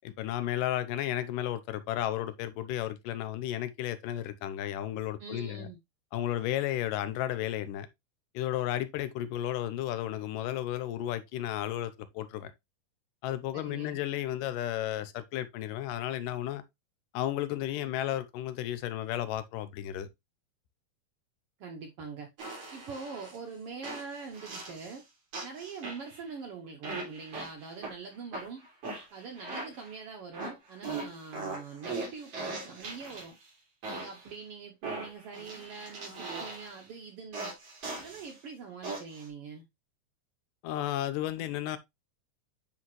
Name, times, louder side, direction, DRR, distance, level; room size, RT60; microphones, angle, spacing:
voice 1, 0.2-5.7 6.1-7.9 8.3-12.5 13.2-16.6 17.1-20.1 40.6-41.8, left 12 dB, 85° left, 2.3 m, -33 dB
voice 2, 5.2-5.8 13.5-14.0 21.6-22.3 22.7-25.0 25.4-28.7 29.1-33.4 33.9-37.5 37.9-39.6, right 5 dB, 80° right, 1.3 m, -43 dB
sound 1, 22.4-23.4 23.8-25.0 25.3-26.3 26.8-27.9 28.3-30.0 30.3-33.4 33.8-34.3 34.8-36.8 37.3-38.3 38.8-39.3, right 3 dB, 50° right, 3.8 m, -40 dB
9.8 x 3.6 x 3.0 m
omnidirectional pair, 3.8 m